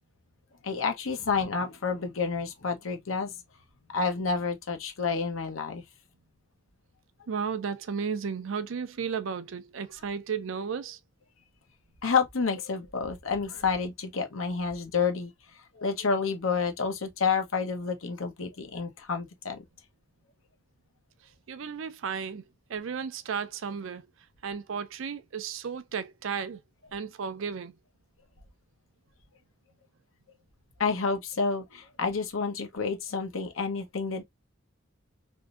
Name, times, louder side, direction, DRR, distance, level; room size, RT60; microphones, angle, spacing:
voice 1, 0.6-3.3 3.9-5.8 12.0-15.3 15.8-19.6 30.8-34.2, left 5 dB, 85° left, 0.9 m, -29 dB
voice 2, 7.3-11.0 21.5-22.4 22.7-24.1 24.4-26.6 26.9-27.8, right 6 dB, 75° right, 0.5 m, -34 dB
3.5 x 2.6 x 2.4 m
head